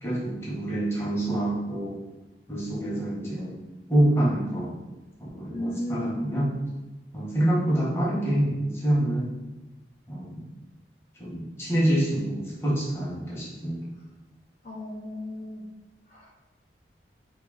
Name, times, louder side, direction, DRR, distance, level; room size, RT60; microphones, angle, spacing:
voice 1, 0.0-1.9 2.5-3.5 3.9-4.7 5.2-6.5 7.1-9.3 10.1-10.4 11.2-13.8, right 1 dB, 15° left, -7 dB, 0.9 m, -26 dB
voice 2, 5.5-6.2 14.7-15.6, left 1 dB, 45° left, -4 dB, 0.5 m, -33 dB
2.9 x 2.8 x 3.7 m, 1.1 s
head